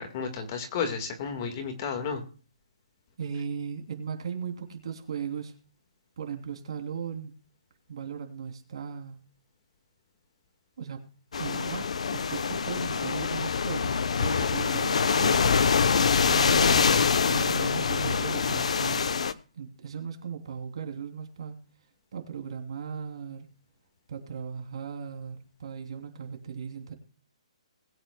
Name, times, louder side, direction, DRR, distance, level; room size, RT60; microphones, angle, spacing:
voice 1, 0.0-2.2, left 6 dB, 30° left, 5 dB, 1.6 m, -32 dB
voice 2, 3.2-5.5 6.2-7.3 7.9-9.2 10.8-11.1 11.4-11.8 12.1-15.6 16.2-19.1 19.5-21.6 22.1-23.5 24.1-26.9, right 7 dB, 55° right, 3 dB, 3.0 m, -37 dB
sound 1, 11.3-19.3, left 5 dB, 70° left, 0.8 m, -25 dB
21.0 x 8.9 x 2.2 m, 0.39 s
hypercardioid pair, 170°, 4 cm